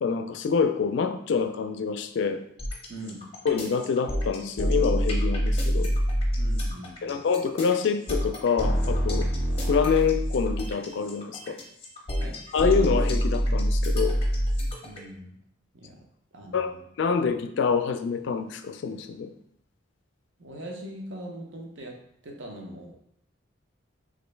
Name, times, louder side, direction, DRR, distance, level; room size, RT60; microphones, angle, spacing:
voice 1, 0.0-2.4 3.4-5.9 7.0-9.3 9.7-11.6 12.5-14.2 16.5-19.3, left 5 dB, 65° left, 8 dB, 0.3 m, -26 dB
sound 1, 2.6-15.0, equal, 30° left, 0.6 m, -26 dB
voice 2, 2.9-3.3 6.4-7.2 12.1-12.4 14.8-15.3 15.7-16.1 16.3-16.8 20.4-23.0, right 1 dB, 70° right, 1 dB, 0.7 m, -41 dB
3.1 x 2.5 x 3.2 m, 0.70 s
head